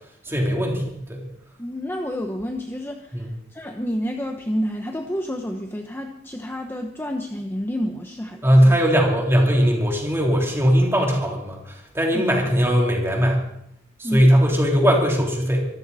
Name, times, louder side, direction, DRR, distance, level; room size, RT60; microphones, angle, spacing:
voice 1, 0.2-1.2 3.1-3.3 8.4-13.4 14.0-15.7, equal, 10° right, 0 dB, 3.4 m, -19 dB
voice 2, 1.6-8.8 12.1-12.3 14.0-14.2, equal, 10° left, 4 dB, 0.9 m, -29 dB
24.5 x 14.0 x 4.2 m, 0.76 s
head